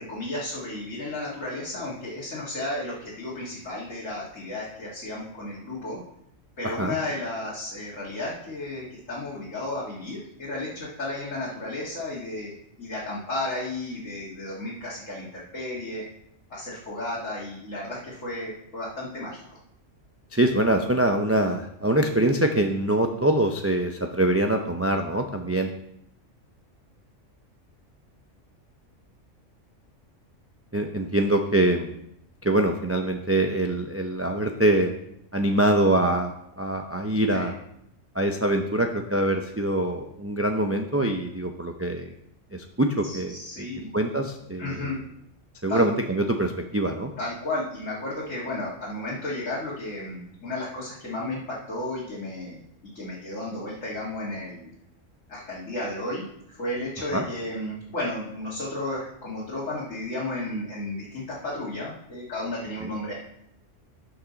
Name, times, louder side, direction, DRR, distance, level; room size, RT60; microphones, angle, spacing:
voice 1, 0.0-6.0 6.6-12.5 12.8-16.0 16.5-19.4 37.3-37.5 43.0-43.9 44.6-45.0 45.7-45.9 47.2-52.6 52.9-54.7 55.3-63.1, left 2 dB, 75° left, -7 dB, 2.3 m, -33 dB
voice 2, 20.3-25.7 30.7-31.9 32.4-34.9 35.3-37.5 38.1-42.1 42.5-43.7 43.9-44.9 45.6-47.1 57.1-57.2 62.8-62.9, right 1 dB, 20° right, 3 dB, 0.4 m, -24 dB
12.5 x 6.0 x 3.9 m, 0.75 s
omnidirectional pair, 1.3 m